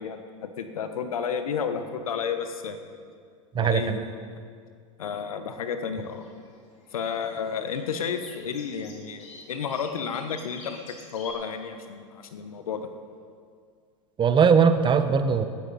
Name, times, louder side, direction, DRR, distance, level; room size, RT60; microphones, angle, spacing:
voice 1, 0.0-2.8 3.5-4.2 5.0-6.3 6.9-10.8 11.1-12.9, left 6 dB, 85° left, 8 dB, 1.3 m, -32 dB
voice 2, 3.5-4.0 14.2-15.5, right 6 dB, 25° right, 10 dB, 1.0 m, -20 dB
sound 1, 6.0-11.3, left 3 dB, 40° left, 3.6 m, -49 dB
16.5 x 13.0 x 4.2 m, 2.1 s
hypercardioid pair, 95°, 18 cm